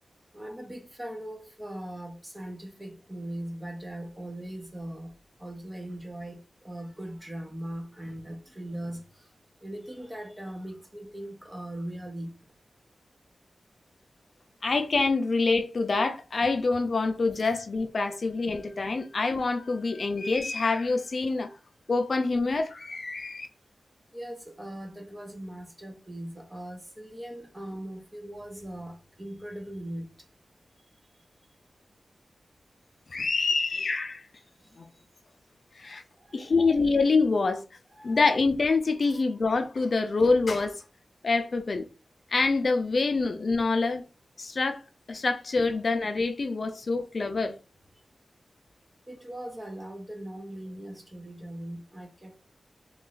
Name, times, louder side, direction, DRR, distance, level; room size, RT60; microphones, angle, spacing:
voice 1, 0.3-5.1 5.4-9.3 9.6-12.4 17.3-17.5 18.5-18.6 21.5-21.6 24.1-30.1 34.6-34.8 36.2-36.5 37.9-38.2 39.0-39.2 49.1-52.5, right 1 dB, 15° right, 0.7 m, -40 dB
voice 2, 14.6-21.5 21.9-23.5 33.1-34.3 34.8-34.9 35.8-36.0 36.3-37.6 38.0-40.8 41.2-41.9 42.3-44.0 44.4-44.8 45.1-47.6, left 3 dB, 50° left, 0.4 m, -26 dB
3.0 x 2.4 x 3.8 m
wide cardioid pair, 140°, 0 cm